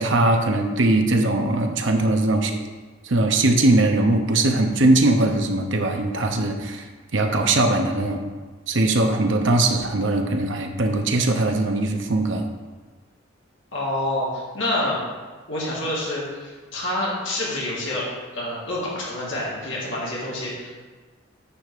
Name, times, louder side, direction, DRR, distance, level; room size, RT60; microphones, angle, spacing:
voice 1, 0.0-2.5 3.0-6.9 7.1-8.2 8.7-12.4, right 2 dB, 65° right, 4 dB, 0.9 m, -20 dB
voice 2, 13.7-15.0 15.5-18.1 18.3-20.7, left 1 dB, 65° left, -6 dB, 2.0 m, -27 dB
9.8 x 3.6 x 6.8 m, 1.3 s
head